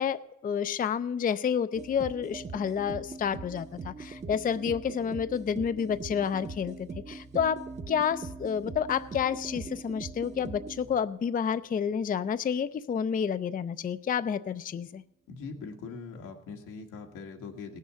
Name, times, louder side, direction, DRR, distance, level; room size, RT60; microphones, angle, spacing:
voice 1, 0.0-15.0, left 7 dB, 30° left, 13 dB, 0.5 m, -30 dB
sound 1, 1.7-11.3, right 4 dB, 25° right, 0.7 m, -41 dB
voice 2, 15.3-17.8, left 4 dB, 90° left, 3 dB, 1.7 m, -42 dB
17.5 x 6.5 x 6.9 m, 0.85 s
cardioid pair, 90°, 30 cm